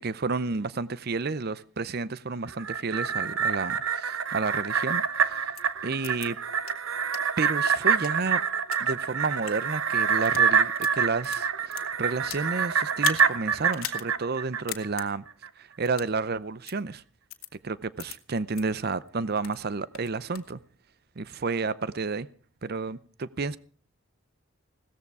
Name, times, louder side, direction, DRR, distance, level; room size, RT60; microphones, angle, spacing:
voice 1, 0.0-5.5 5.8-6.4 7.4-8.4 8.8-15.2 15.6-17.0 17.6-20.6 21.2-22.3 22.6-23.6, right 4 dB, 50° right, 0.7 m, -31 dB
sound 1, 2.5-15.1 15.4-15.5, right 6 dB, 80° right, 1.0 m, -26 dB
sound 2, 5.5-5.6 6.0-6.3 6.6-6.7 7.1-7.2 7.8-8.8 9.3-9.5 10.1-10.5 10.8-12.5 12.9-13.3 13.7-14.0 14.3-14.4 14.7-15.1 15.9-16.1 16.7-16.8 17.3-17.5 18.0-18.1 18.5-18.6 19.1-19.6 19.9-20.5, left 11 dB, 85° left, 1.7 m, -38 dB
17.0 x 14.0 x 4.8 m
head